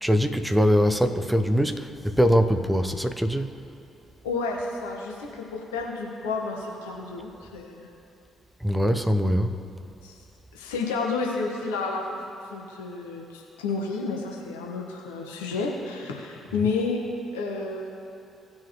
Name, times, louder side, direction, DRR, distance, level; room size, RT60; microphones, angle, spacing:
voice 1, 0.0-3.5 8.6-9.6, equal, 5° right, 8 dB, 0.8 m, -22 dB
voice 2, 4.2-7.9 10.0-10.1 10.5-12.2 12.5-17.0 17.3-17.9, left 4 dB, 75° left, -1 dB, 1.3 m, -31 dB
17.5 x 6.2 x 3.0 m, 2.8 s
figure-of-eight pair, 45°, 0 cm